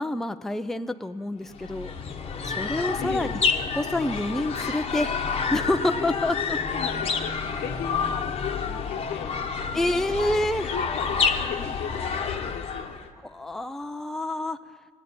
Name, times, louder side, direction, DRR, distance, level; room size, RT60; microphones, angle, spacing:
voice 1, 0.0-1.9 2.4-5.1 5.5-6.6 9.7-10.7 13.2-14.6, left 1 dB, ahead, 8 dB, 0.4 m, -28 dB
sound 1, 1.5-13.1, left 5 dB, 35° left, 1.0 m, -29 dB
voice 2, 3.0-3.4 6.6-9.4 9.7-10.1 10.7-13.1, left 8 dB, 75° left, 8 dB, 1.0 m, -37 dB
15.5 x 8.7 x 9.4 m, 2.4 s
cardioid pair, 110°, 17 cm